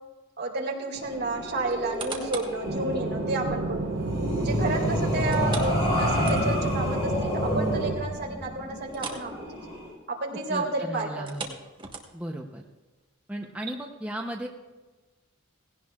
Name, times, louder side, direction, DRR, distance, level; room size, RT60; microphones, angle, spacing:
voice 1, 0.4-4.0 4.4-9.3 10.2-11.3, right 2 dB, 50° right, 0 dB, 2.3 m, -31 dB
sound 1, 0.9-9.9, equal, 30° left, 3.0 m, -29 dB
sound 2, 1.7-2.6 3.1-3.2 5.3-6.8 7.1-7.2 7.6-7.7 8.9-9.3 9.6-9.8 11.1-12.4 13.0-13.1, right 4 dB, 25° right, 1.3 m, -39 dB
sound 3, 2.6-8.0, right 2 dB, 70° right, 1.4 m, -31 dB
voice 2, 10.5-11.6 12.1-12.6 13.3-14.5, right 1 dB, 5° right, 1 dB, 0.7 m, -35 dB
17.0 x 17.0 x 2.4 m, 1.2 s
head